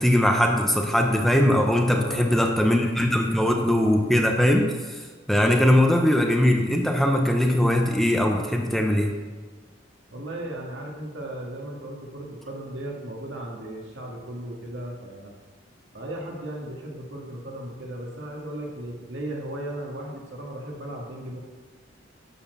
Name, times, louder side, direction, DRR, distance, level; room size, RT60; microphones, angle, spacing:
voice 1, 0.0-9.1, left 1 dB, ahead, 2 dB, 0.8 m, -21 dB
voice 2, 1.9-2.6 10.1-15.3 15.9-21.4, right 1 dB, 75° right, -1 dB, 2.1 m, -36 dB
11.5 x 4.4 x 6.8 m, 1.4 s
head